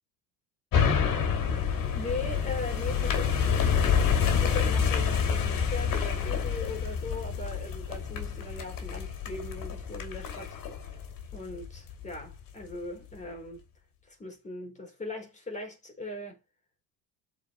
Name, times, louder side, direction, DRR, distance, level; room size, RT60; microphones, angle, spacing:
sound 1, 0.7-12.2 12.6-12.7, left 7 dB, 55° left, 2.8 m, -28 dB
voice 1, 2.0-10.6 10.8-11.0 11.3-13.6 14.1-16.4, left 2 dB, 15° left, 4.1 m, -39 dB
13.0 x 5.1 x 2.6 m
cardioid pair, 155°, 41 cm